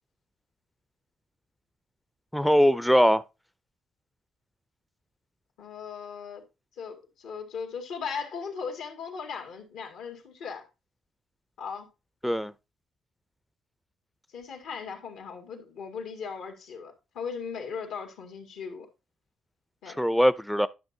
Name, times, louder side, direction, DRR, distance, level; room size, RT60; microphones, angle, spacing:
voice 1, 2.3-3.2 12.2-12.5 20.0-20.7, equal, ahead, 0.4 m, -21 dB
voice 2, 5.6-6.4 6.8-10.6 11.6-11.9 14.3-18.9 19.8-20.0, left 6 dB, 90° left, 2.0 m, -38 dB
10.5 x 6.2 x 2.7 m
cardioid pair, 90°, 0 cm